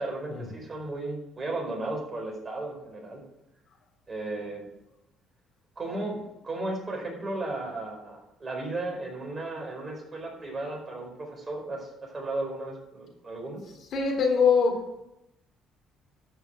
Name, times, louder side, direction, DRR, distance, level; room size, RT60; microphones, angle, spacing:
voice 1, 0.0-3.2 4.1-4.6 5.8-6.2 6.4-13.6, right 2 dB, 25° right, -1 dB, 4.8 m, -35 dB
voice 2, 13.9-15.0, left 5 dB, 60° left, 1 dB, 3.4 m, -24 dB
12.5 x 6.0 x 7.6 m, 0.85 s
cardioid pair, 100°, 0 cm